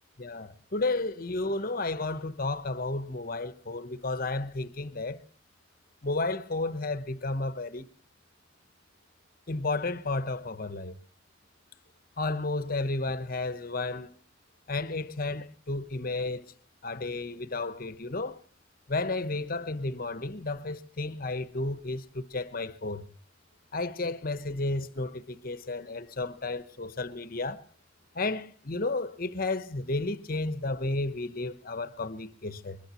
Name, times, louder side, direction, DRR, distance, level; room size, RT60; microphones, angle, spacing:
voice 1, 0.2-5.2 6.0-7.9 9.5-11.0 12.2-14.1 14.7-16.5 16.8-18.4 18.9-23.1 23.7-27.7 28.1-32.8, left 2 dB, 50° left, 1.0 m, -32 dB
21.5 x 21.5 x 3.0 m
head